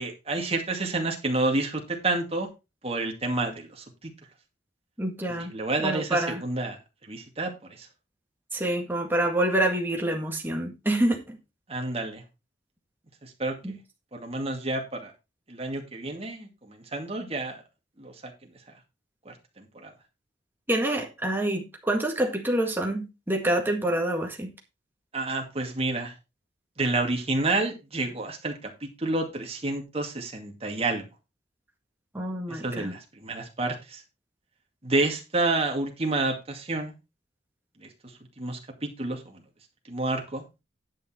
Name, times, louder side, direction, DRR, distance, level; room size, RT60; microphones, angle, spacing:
voice 1, 0.0-2.5 2.8-4.1 5.3-6.8 7.1-7.9 11.7-12.2 13.2-13.8 14.1-15.1 15.5-17.6 18.0-18.1 18.4-18.5 19.3-19.9 25.1-26.1 26.8-31.0 32.5-34.0 34.8-36.9 37.8-37.9 38.4-39.4 39.9-40.4, right 2 dB, 35° right, 2.3 m, -29 dB
voice 2, 5.0-5.5 5.8-6.4 8.5-11.4 13.6-13.8 20.7-24.5 32.1-33.0, right 1 dB, 10° right, 1.9 m, -27 dB
10.5 x 6.4 x 4.4 m
head